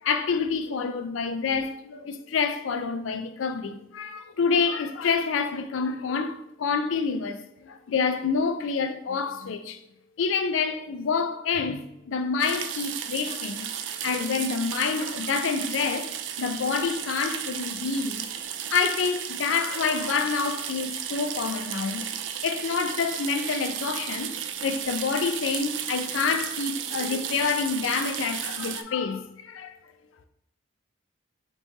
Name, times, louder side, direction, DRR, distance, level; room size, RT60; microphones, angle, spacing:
voice 1, 0.0-9.8 10.2-18.3 18.7-22.0 22.4-29.8, left 5 dB, 75° left, 0.4 m, -28 dB
sound 1, 12.4-28.8, right 9 dB, 65° right, 0.4 m, -34 dB
5.2 x 3.1 x 2.7 m
head